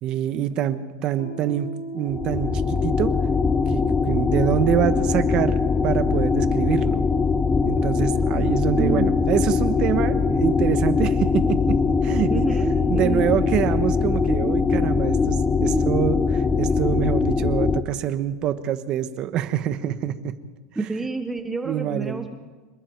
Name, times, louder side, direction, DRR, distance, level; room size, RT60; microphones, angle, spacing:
voice 1, 0.0-3.1 3.7-7.0 7.6-11.6 12.0-12.4 12.9-20.3 21.6-22.2, right 10 dB, 35° right, 11 dB, 1.2 m, -25 dB
Piano, 1.2-8.4, right 3 dB, 65° left, 4.9 m, -41 dB
sound 1, 2.0-17.8, left 5 dB, 15° left, 0.8 m, -22 dB
voice 2, 8.8-9.2 12.3-13.3 15.7-15.8 20.8-22.3, right 3 dB, 10° right, 6 dB, 1.1 m, -28 dB
26.5 x 22.0 x 4.7 m, 1.3 s
supercardioid pair, 150°, 2 cm